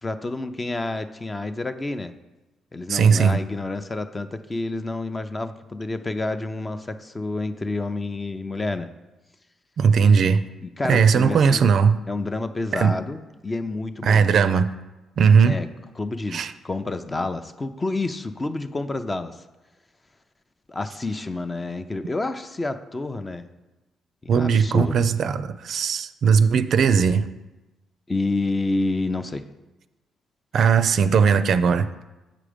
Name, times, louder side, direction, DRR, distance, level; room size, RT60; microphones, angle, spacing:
voice 1, 0.0-2.1 2.7-8.9 10.6-11.6 12.1-14.3 15.4-15.7 16.0-19.3 20.7-23.5 24.2-25.1 28.1-29.5, left 2 dB, 20° left, 9 dB, 0.5 m, -29 dB
voice 2, 2.9-3.4 9.8-10.4 10.8-12.0 12.7-13.0 14.0-14.7 15.2-15.6 16.3-16.5 24.3-27.3 30.5-31.9, right 6 dB, 60° right, 11 dB, 0.4 m, -18 dB
7.6 x 5.0 x 5.0 m, 1.1 s
cardioid pair, 90°, 0 cm